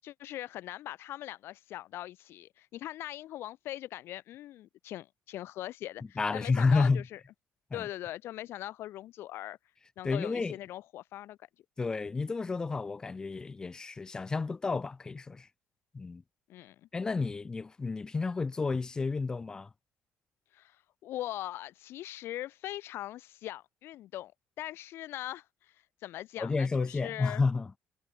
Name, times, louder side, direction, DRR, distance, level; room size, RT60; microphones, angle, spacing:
voice 1, 0.0-7.2 7.7-9.6 10.0-11.5 16.5-16.8 20.5-24.3 24.6-27.4, left 14 dB, 60° left, 2.0 m, -41 dB
voice 2, 6.2-7.0 7.7-7.8 10.0-10.6 11.8-15.5 15.9-16.2 16.9-19.7 26.4-27.7, left 4 dB, 15° left, 0.6 m, -30 dB
cardioid pair, 175°, 5 cm